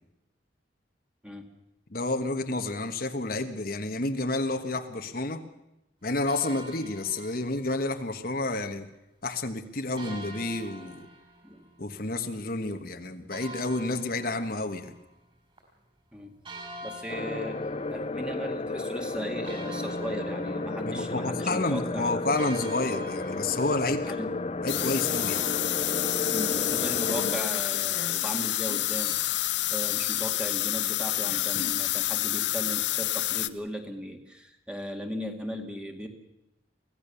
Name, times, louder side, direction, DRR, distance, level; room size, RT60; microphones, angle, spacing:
voice 1, 1.9-5.4 6.0-8.9 9.2-11.1 11.8-14.9 20.8-24.1 24.6-25.4, left 2 dB, 55° left, 6 dB, 1.4 m, -30 dB
sound 1, 6.3-7.9 10.0-12.4 13.3-15.3 15.6-15.7 16.4-18.4 18.9-19.0 19.4-25.5, right 1 dB, 30° right, 5.0 m, -45 dB
voice 2, 16.8-17.6 17.9-22.2 24.0-24.3 26.3-29.4 29.7-36.1, equal, 5° right, 4 dB, 2.1 m, -37 dB
sound 2, 17.1-27.4, left 3 dB, 35° left, 0.7 m, -33 dB
sound 3, 24.7-33.5, left 14 dB, 75° left, 0.8 m, -28 dB
24.5 x 16.5 x 7.0 m, 0.89 s
head